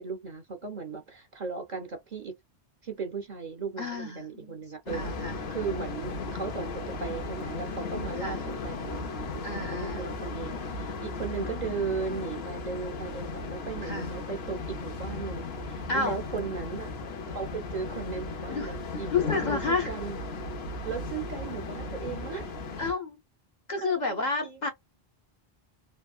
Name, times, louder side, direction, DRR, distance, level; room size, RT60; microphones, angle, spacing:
voice 1, 0.0-2.3 2.8-16.9 17.3-20.2 20.8-22.5 23.8-24.7, right 5 dB, 50° right, 0.8 m, -37 dB
voice 2, 3.8-4.6 4.9-5.4 8.2-8.4 9.4-10.0 13.8-14.1 15.9-16.2 18.5-18.7 19.1-19.9 22.8-23.2 23.7-24.7, left 4 dB, 50° left, 0.9 m, -30 dB
sound 1, 4.9-22.9, left 3 dB, 80° left, 1.0 m, -36 dB
3.4 x 2.0 x 2.4 m
omnidirectional pair, 1.0 m